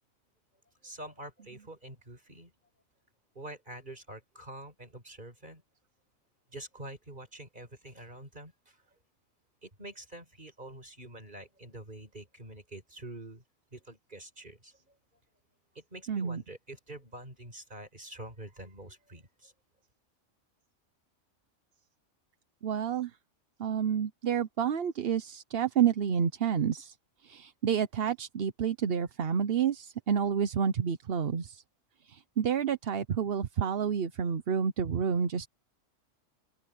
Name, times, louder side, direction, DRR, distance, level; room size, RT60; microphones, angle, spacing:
voice 1, 0.8-2.5 3.4-5.6 6.5-8.8 9.6-13.4 13.7-14.9 15.8-19.5, right 1 dB, 35° right, 5.2 m, -46 dB
voice 2, 16.1-16.4 22.6-23.1 23.6-26.9 27.2-31.6 32.0-35.5, right 8 dB, 55° right, 1.0 m, -29 dB
open air
omnidirectional pair, 1.3 m